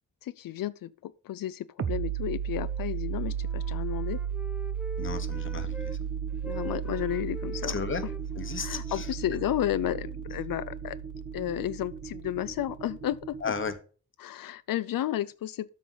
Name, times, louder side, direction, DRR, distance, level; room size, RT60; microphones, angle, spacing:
voice 1, 0.2-4.2 6.4-7.7 8.6-11.0 11.3-13.4 14.2-15.7, left 12 dB, 85° left, 0.5 m, -32 dB
sound 1, 1.8-13.1, right 8 dB, 45° right, 0.8 m, -35 dB
Wind instrument woodwind instrument, 2.6-6.0 6.3-10.2, equal, 5° right, 0.8 m, -45 dB
voice 2, 5.0-6.0 7.7-8.0 8.3-9.1 13.4-13.8, left 5 dB, 35° left, 1.1 m, -34 dB
sound 2, 5.0-13.7, right 6 dB, 65° right, 1.6 m, -42 dB
12.5 x 5.3 x 3.9 m
wide cardioid pair, 140°, 33 cm